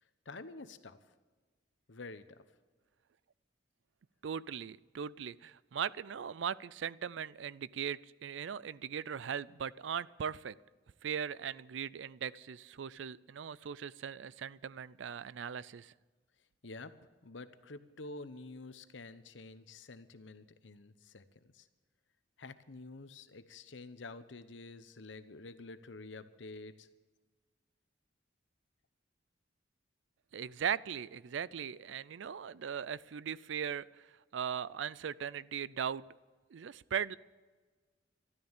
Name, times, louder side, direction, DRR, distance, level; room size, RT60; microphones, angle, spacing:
voice 1, 0.2-1.1 1.9-2.4 16.6-17.0 17.2-21.7 22.4-26.9, left 3 dB, 80° left, 12 dB, 0.9 m, -49 dB
voice 2, 4.2-10.6 11.0-15.9 30.3-36.0 36.5-37.2, right 8 dB, 80° right, 20 dB, 0.4 m, -39 dB
13.0 x 13.0 x 7.3 m, 1.4 s
head